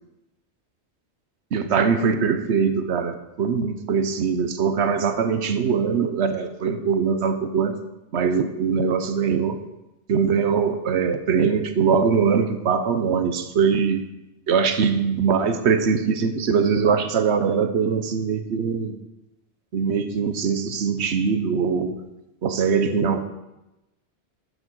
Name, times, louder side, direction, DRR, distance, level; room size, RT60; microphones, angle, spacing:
voice 1, 1.5-7.8 8.1-9.6 10.1-14.0 14.5-19.0 19.7-22.0 22.4-23.2, right 6 dB, 70° right, 8 dB, 1.2 m, -22 dB
12.0 x 6.6 x 6.3 m, 0.96 s
omnidirectional pair, 1.2 m